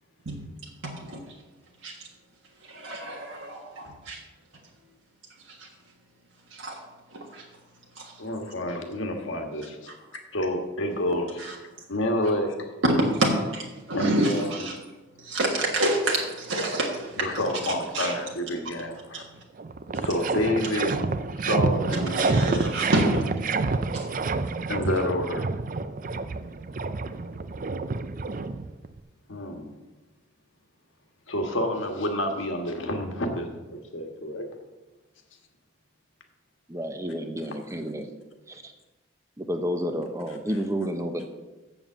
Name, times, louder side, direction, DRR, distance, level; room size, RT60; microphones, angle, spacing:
voice 1, 0.8-1.2 1.8-1.9 2.7-4.2 5.6-5.7 6.5-6.8 7.1-7.4 8.0-8.1 11.4-11.5 12.8-14.8 15.2-17.2 17.9-18.1 19.1-19.2 22.1-23.3 23.9-24.1, right 1 dB, 75° right, -2 dB, 1.5 m, -27 dB
voice 2, 8.2-9.9 10.3-11.6 11.9-12.5 13.9-14.7 17.2-19.2 20.0-21.0 21.4-22.7 24.7-25.5 29.3-29.7 31.3-34.4, left 1 dB, 75° left, 3 dB, 1.5 m, -29 dB
sound 1, 19.2-19.3 19.6-29.0, right 3 dB, 40° right, 0.4 m, -28 dB
voice 3, 36.7-38.1 38.5-38.7 39.4-41.3, equal, 15° right, 6 dB, 0.8 m, -30 dB
7.4 x 7.2 x 7.2 m, 1.1 s
head